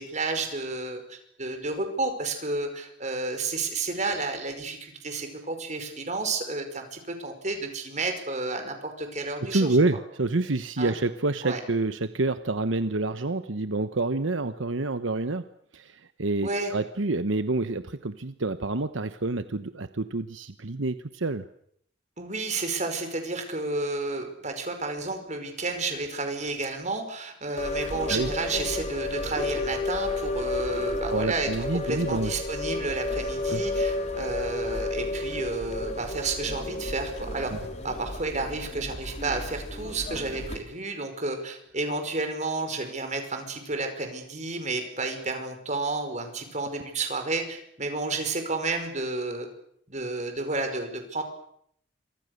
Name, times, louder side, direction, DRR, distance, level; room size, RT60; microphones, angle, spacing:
voice 1, 0.0-9.7 10.8-10.9 11.4-11.6 16.4-16.7 22.2-37.5 37.8-49.5 49.9-51.2, right 3 dB, 35° right, 6 dB, 5.3 m, -31 dB
voice 2, 9.4-15.4 15.7-21.4 28.1-28.3 31.1-32.3 33.5-33.6, right 2 dB, 80° right, 11 dB, 1.1 m, -28 dB
sound 1, 27.6-40.6, left 2 dB, 35° left, 3.3 m, -32 dB
28.0 x 25.0 x 6.7 m, 0.68 s
head